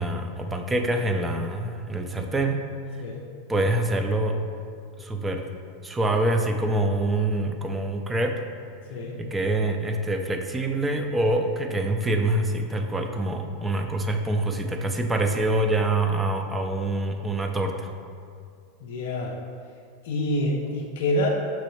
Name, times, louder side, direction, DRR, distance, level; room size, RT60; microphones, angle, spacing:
voice 1, 0.0-2.6 3.5-4.4 5.0-5.4 5.8-8.4 9.2-17.9, right 2 dB, 15° right, 4 dB, 0.4 m, -25 dB
voice 2, 8.9-9.2 18.8-19.4 20.0-21.3, left 1 dB, 70° left, -1 dB, 0.4 m, -27 dB
5.4 x 3.1 x 3.0 m, 2.2 s
hypercardioid pair, 105°, 0 cm